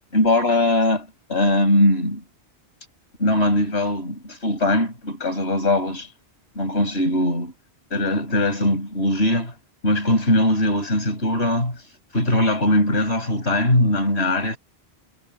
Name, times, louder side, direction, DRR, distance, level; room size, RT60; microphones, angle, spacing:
voice 1, 0.1-2.2 3.2-6.1 6.6-7.5 7.9-9.5 9.8-11.8 12.1-14.6, left 1 dB, 75° left, 6.1 m, -20 dB
omnidirectional pair, 1.1 m